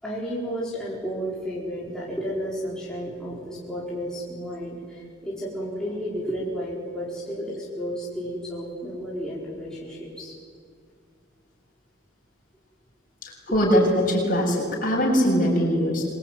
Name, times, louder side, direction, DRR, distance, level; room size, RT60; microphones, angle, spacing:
voice 1, 0.0-10.3 13.5-13.6, equal, 5° left, -7 dB, 4.9 m, -32 dB
voice 2, 13.2-16.0, equal, 45° left, -1 dB, 7.6 m, -21 dB
27.0 x 22.5 x 9.4 m, 2.2 s
head